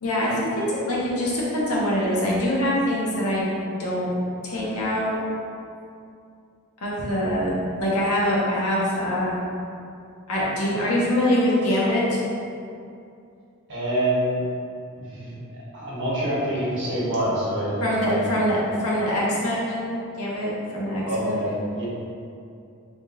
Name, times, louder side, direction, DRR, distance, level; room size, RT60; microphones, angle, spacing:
voice 1, 0.0-3.5 3.8-4.1 4.4-5.1 6.8-7.5 7.7-9.4 10.3-12.2 17.8-19.9 20.2-21.4, equal, 85° left, -6 dB, 0.9 m, -24 dB
voice 2, 13.7-14.4 14.9-18.3 21.1-21.9, right 1 dB, 55° right, -7 dB, 1.1 m, -26 dB
3.6 x 2.4 x 3.9 m, 2.5 s
head